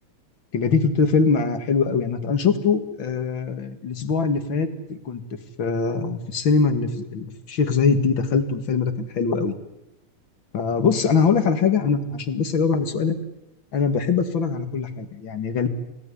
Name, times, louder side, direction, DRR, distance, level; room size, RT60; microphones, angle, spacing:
voice 1, 0.5-5.2 5.6-9.5 10.5-13.2 13.7-15.7, left 5 dB, 45° left, 9 dB, 2.5 m, -22 dB
28.5 x 18.0 x 10.0 m, 0.93 s
omnidirectional pair, 3.3 m